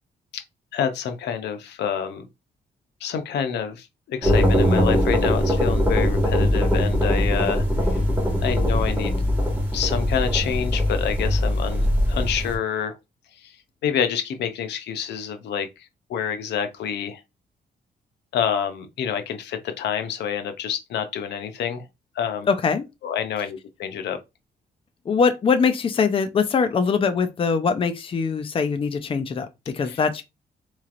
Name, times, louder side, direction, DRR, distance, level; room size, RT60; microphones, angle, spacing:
voice 1, 0.7-2.3 3.0-8.0 8.4-9.1 9.7-13.0 13.4-13.6 13.8-17.2 18.3-21.9 22.2-22.5 23.0-24.2 29.8-30.0, left 8 dB, 85° left, 0.6 m, -28 dB
sound 1, 4.2-12.5, equal, 10° right, 1.8 m, -21 dB
voice 2, 22.5-22.8 25.1-30.2, left 5 dB, 30° left, 0.5 m, -22 dB
3.9 x 3.1 x 2.4 m
cardioid pair, 115°, 17 cm